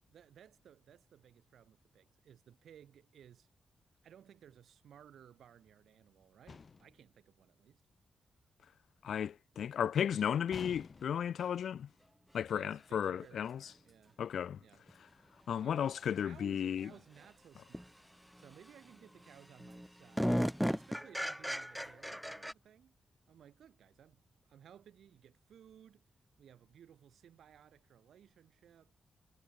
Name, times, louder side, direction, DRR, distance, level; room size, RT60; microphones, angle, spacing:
voice 1, 0.1-3.5 4.0-7.8 12.5-14.2 14.6-14.8 15.2-17.9 18.4-22.9 23.3-24.2 24.5-26.0 26.4-28.9, right 9 dB, 85° right, 6.6 m, -60 dB
sound 1, 6.5-7.0 10.5-11.3, left 5 dB, 35° left, 2.9 m, -49 dB
voice 2, 9.0-11.9 12.3-13.6 14.2-14.6 15.5-16.9, left 8 dB, 70° left, 0.3 m, -34 dB
sound 2, 14.9-15.0 17.7-17.9 18.3-18.8 19.2-19.3 19.6-22.5, equal, ahead, 0.4 m, -35 dB
wide cardioid pair, 175°, 0 cm